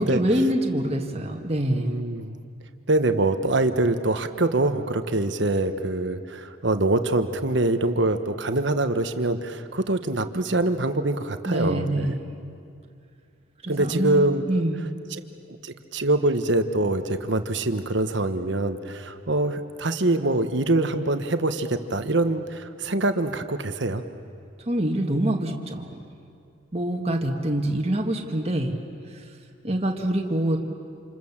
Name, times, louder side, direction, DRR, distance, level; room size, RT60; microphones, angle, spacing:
voice 1, 0.0-2.0 11.5-12.3 13.6-14.8 24.7-25.9 26.7-28.8 29.1-29.2 29.6-30.6, right 1 dB, 30° right, 2 dB, 1.8 m, -25 dB
voice 2, 1.7-2.3 2.9-12.1 13.7-14.6 15.1-15.2 15.6-24.0, right 2 dB, 65° right, 8 dB, 1.3 m, -24 dB
27.5 x 27.5 x 7.4 m, 2.4 s
head